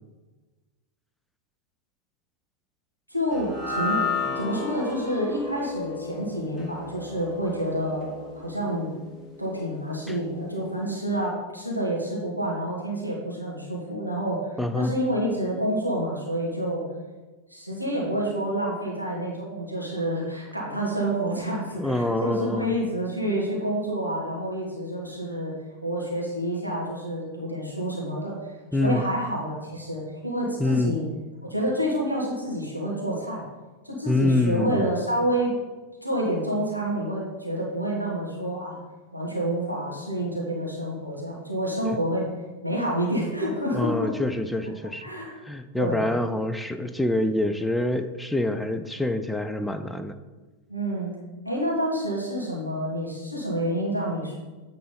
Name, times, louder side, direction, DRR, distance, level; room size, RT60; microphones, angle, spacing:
voice 1, 3.1-4.0 4.3-8.9 9.4-14.5 14.7-16.8 17.5-25.5 25.8-28.4 28.8-31.0 31.5-33.4 33.8-35.5 36.0-38.8 39.1-42.3 42.6-44.1 45.0-45.3 45.8-46.0 50.7-51.2 51.4-54.3, right 1 dB, 90° left, -3 dB, 1.6 m, -28 dB
sound 1, 3.3-9.7, left 4 dB, 25° left, 1.8 m, -33 dB
voice 2, 14.6-14.9 21.8-22.7 28.7-29.0 30.6-31.0 34.1-34.9 43.7-45.1 45.4-50.2, left 2 dB, 5° left, 9 dB, 0.4 m, -26 dB
8.6 x 3.8 x 5.2 m, 1.2 s
figure-of-eight pair, 90°, 0 cm